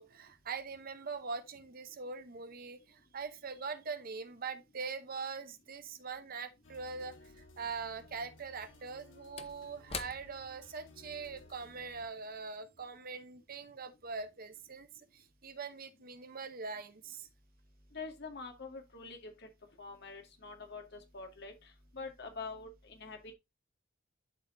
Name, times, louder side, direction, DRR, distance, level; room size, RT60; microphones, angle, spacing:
voice 1, 0.0-17.3, right 5 dB, 50° right, 0.9 m, -43 dB
sound 1, 6.6-12.1, left 2 dB, 85° left, 2.2 m, -58 dB
Slam / Wood, 8.5-13.2 13.5-13.7, left 6 dB, 30° left, 0.7 m, -49 dB
voice 2, 17.9-19.3 19.8-21.5 21.9-23.3, left 4 dB, 60° left, 2.1 m, -45 dB
12.0 x 4.2 x 2.6 m
head